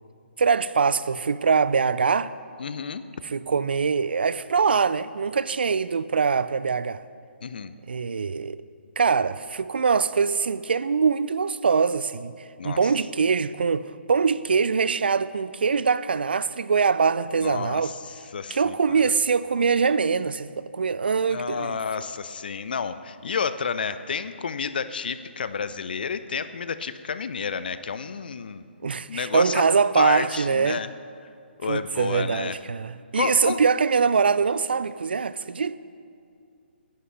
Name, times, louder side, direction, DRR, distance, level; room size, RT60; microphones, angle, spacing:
voice 1, 0.4-2.3 3.3-7.0 7.9-8.6 9.0-12.3 12.6-17.9 18.5-21.8 28.8-30.8 31.7-35.8, right 5 dB, 60° right, 0.4 m, -23 dB
voice 2, 2.6-3.0 7.4-7.7 12.6-12.9 17.4-19.0 21.3-28.6 29.1-29.6 29.9-30.9 31.6-32.6 33.1-33.6, left 6 dB, 55° left, 0.5 m, -30 dB
18.5 x 10.5 x 3.2 m
figure-of-eight pair, 135°, 6 cm